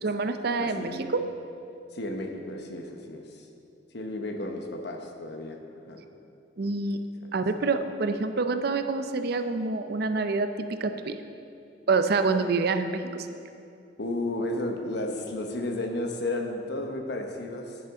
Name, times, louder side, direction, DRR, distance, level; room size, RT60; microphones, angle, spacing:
voice 1, 0.0-1.2 6.6-7.0 7.3-11.2 11.9-13.3, right 3 dB, 60° right, 8 dB, 0.5 m, -27 dB
voice 2, 0.6-1.2 1.9-3.5 3.9-5.6 5.9-6.0 7.2-7.4 14.0-17.8, left 1 dB, 65° left, 3 dB, 1.0 m, -33 dB
10.5 x 10.0 x 3.7 m, 2.6 s
head